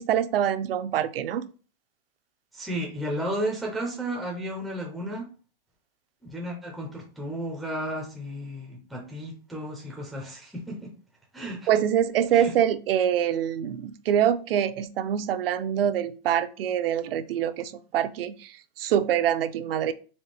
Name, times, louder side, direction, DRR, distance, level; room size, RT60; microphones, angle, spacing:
voice 1, 0.0-1.5 11.7-19.9, right 10 dB, 75° right, 11 dB, 0.5 m, -25 dB
voice 2, 2.5-5.3 6.2-10.9 11.3-11.8 12.3-12.5, right 1 dB, ahead, -2 dB, 0.3 m, -33 dB
4.2 x 2.9 x 3.2 m, 0.36 s
supercardioid pair, 155°, 29 cm